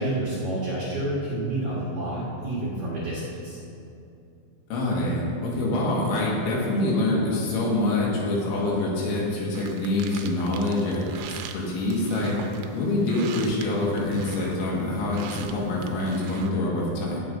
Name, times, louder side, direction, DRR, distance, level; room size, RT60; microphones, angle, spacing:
voice 1, 0.0-3.6, right 1 dB, 60° right, -8 dB, 2.0 m, -29 dB
voice 2, 4.7-12.4 12.7-17.2, left 2 dB, 75° left, -4 dB, 4.0 m, -25 dB
sound 1, 9.5-16.5, right 7 dB, 90° right, 3.2 m, -42 dB
18.0 x 8.3 x 2.7 m, 2.6 s
omnidirectional pair, 5.5 m